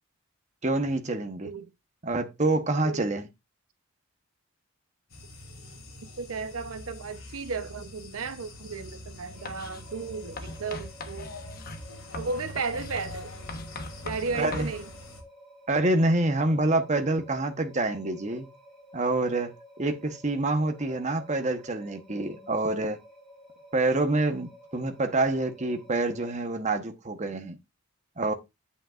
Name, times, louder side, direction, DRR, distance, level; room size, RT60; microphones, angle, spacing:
voice 1, 0.6-1.5 2.0-3.3 14.4-14.7 15.7-18.5 18.9-23.0 23.7-27.6 28.2-28.3, right 2 dB, 35° right, 1.0 m, -27 dB
sound 1, 5.1-15.2, left 1 dB, 70° left, 2.8 m, -44 dB
voice 2, 6.0-11.3 12.1-13.3 14.0-14.9, right 4 dB, 80° right, 0.8 m, -34 dB
sound 2, 9.3-26.3, left 1 dB, ahead, 3.9 m, -53 dB
Writing, 9.5-9.8 10.4-14.8, left 2 dB, 45° left, 1.1 m, -40 dB
8.6 x 7.9 x 2.5 m
head